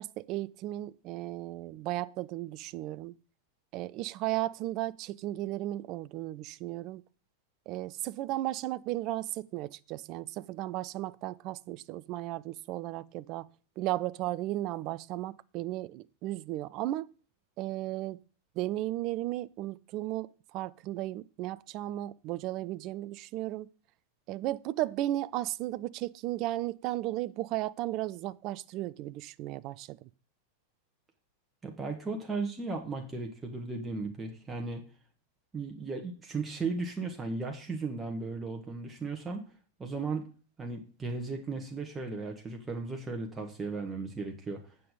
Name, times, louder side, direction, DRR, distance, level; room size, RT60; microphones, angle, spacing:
voice 1, 0.0-3.1 3.7-7.0 7.7-13.5 13.8-17.1 17.6-18.2 18.6-23.7 24.3-30.1, right 15 dB, 40° right, 0.4 m, -35 dB
voice 2, 31.6-34.8 35.5-39.4 39.8-40.3 40.6-44.6, right 3 dB, 15° right, 1.4 m, -36 dB
8.6 x 6.9 x 5.1 m
figure-of-eight pair, 90°, 0 cm